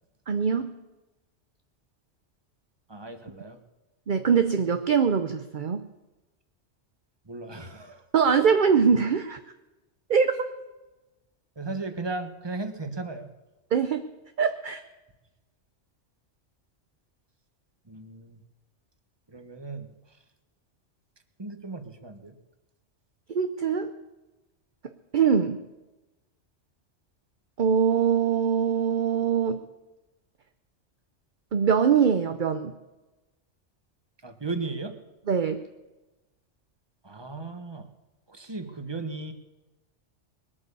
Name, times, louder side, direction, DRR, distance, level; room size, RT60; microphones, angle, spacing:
voice 1, 0.3-0.7 4.1-5.9 8.1-9.4 10.1-10.4 13.7-14.1 14.4-14.8 23.3-24.0 25.1-25.7 27.6-29.6 31.5-32.8 35.3-35.7, right 6 dB, 45° right, 8 dB, 0.8 m, -23 dB
voice 2, 2.9-3.6 7.2-8.0 11.6-13.3 17.8-18.4 19.3-20.2 21.4-22.3 34.2-35.0 37.0-37.9 38.3-39.3, right 3 dB, 20° right, 7 dB, 1.3 m, -36 dB
21.5 x 8.7 x 6.9 m, 1.1 s
omnidirectional pair, 1.2 m